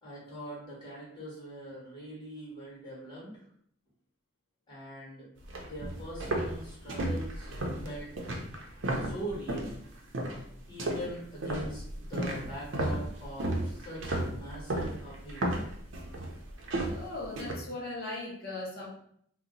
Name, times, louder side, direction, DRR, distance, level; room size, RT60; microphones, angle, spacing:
voice 1, 0.0-3.3 4.7-5.3 5.6-7.5 7.8-8.3 9.0-9.8 10.7-15.6, right 1 dB, 25° left, -5 dB, 1.5 m, -42 dB
sound 1, 5.4-9.8 10.1-10.5 10.8-17.5, right 1 dB, 75° right, 0.6 m, -34 dB
voice 2, 16.9-18.9, left 2 dB, 55° left, -4 dB, 0.9 m, -38 dB
2.8 x 2.1 x 3.8 m, 0.67 s
head